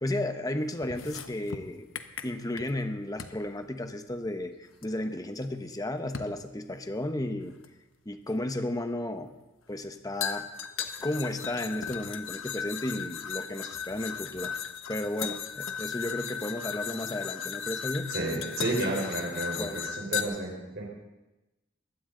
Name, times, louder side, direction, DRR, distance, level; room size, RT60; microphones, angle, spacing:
voice 1, 0.0-1.9 2.2-4.5 4.8-7.6 8.0-9.3 9.7-10.5 11.0-14.5 14.9-18.1 19.6-19.8, left 1 dB, 20° left, 7 dB, 1.0 m, -33 dB
sound 1, 0.8-2.8 3.2-3.4 4.8-4.9 6.1-6.4 7.6-7.7 10.2-20.2, left 8 dB, 90° left, 1.2 m, -36 dB
voice 2, 18.1-20.8, right 2 dB, 60° right, 0 dB, 4.2 m, -31 dB
21.5 x 16.0 x 3.9 m, 1.0 s
head